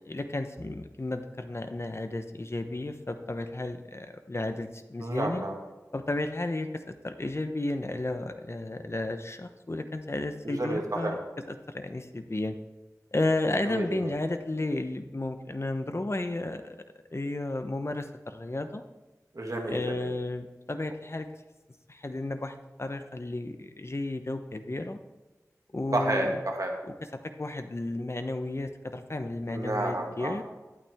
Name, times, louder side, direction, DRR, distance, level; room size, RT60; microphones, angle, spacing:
voice 1, 0.0-5.4 5.9-11.2 11.7-12.6 13.1-16.8 17.1-18.8 19.7-21.3 21.9-25.0 25.7-26.4 27.4-30.4, left 2 dB, 45° left, 8 dB, 0.9 m, -33 dB
voice 2, 5.0-5.5 10.4-11.2 13.6-14.1 19.3-20.1 25.9-26.7 29.5-30.4, right 1 dB, 65° right, 1 dB, 2.1 m, -31 dB
12.0 x 11.5 x 3.6 m, 1.1 s
wide cardioid pair, 50°, 6 cm